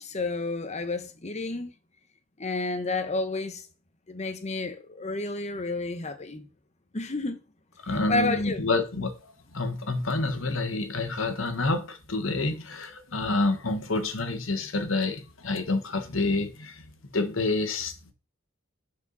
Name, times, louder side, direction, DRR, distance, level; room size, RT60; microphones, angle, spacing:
voice 1, 0.0-1.7 2.4-3.6 4.1-6.5 6.9-7.4 8.1-8.7, left 3 dB, 35° left, 1.0 m, -30 dB
voice 2, 7.8-9.1 9.5-16.8 17.1-18.1, left 2 dB, 90° left, 1.4 m, -28 dB
11.0 x 4.7 x 4.1 m
head